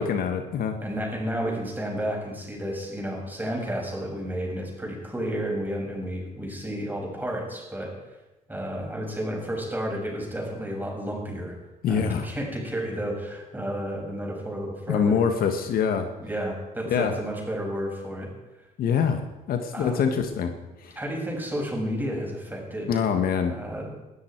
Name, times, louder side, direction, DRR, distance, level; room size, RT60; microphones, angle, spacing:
voice 1, 0.0-0.8 11.8-12.3 14.9-16.1 16.8-17.1 18.8-19.2 19.5-20.5 20.8-20.9 22.9-23.5, left 7 dB, 65° left, 6 dB, 1.7 m, -24 dB
voice 2, 0.8-8.0 8.5-11.5 11.9-15.2 16.2-18.3 19.7-20.0 21.0-22.9 23.5-23.9, equal, 10° right, -1 dB, 6.9 m, -31 dB
20.0 x 13.0 x 4.7 m, 1.1 s
cardioid pair, 85°, 16 cm